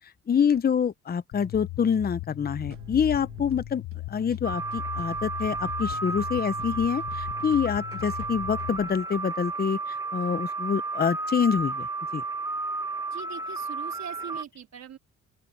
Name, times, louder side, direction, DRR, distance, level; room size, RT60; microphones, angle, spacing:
voice 1, 0.3-3.8 4.1-11.9 12.1-12.2, left 7 dB, 30° left, 0.8 m, -26 dB
sound 1, 1.3-8.7, left 19 dB, 75° left, 1.2 m, -38 dB
sound 2, 2.5-9.0, right 8 dB, 45° right, 1.7 m, -50 dB
sound 3, 4.4-14.4, right 3 dB, 10° right, 1.6 m, -32 dB
voice 2, 13.1-15.0, right 9 dB, 60° right, 4.0 m, -42 dB
open air
cardioid pair, 90°, 30 cm